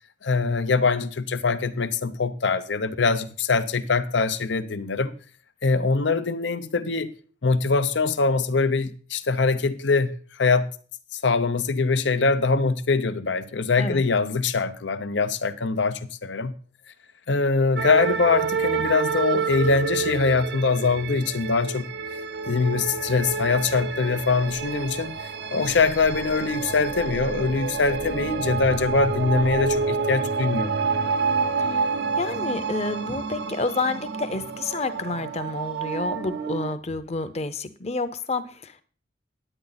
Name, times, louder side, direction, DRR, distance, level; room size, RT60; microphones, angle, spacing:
voice 1, 0.2-5.1 5.6-7.1 7.4-10.7 11.2-16.5 17.3-21.9 22.5-25.2 25.5-30.9, left 4 dB, 90° left, 0.7 m, -23 dB
sound 1, 17.8-36.8, right 5 dB, 65° right, 0.6 m, -28 dB
voice 2, 32.2-38.8, left 3 dB, 35° left, 0.8 m, -29 dB
10.0 x 8.9 x 4.0 m
head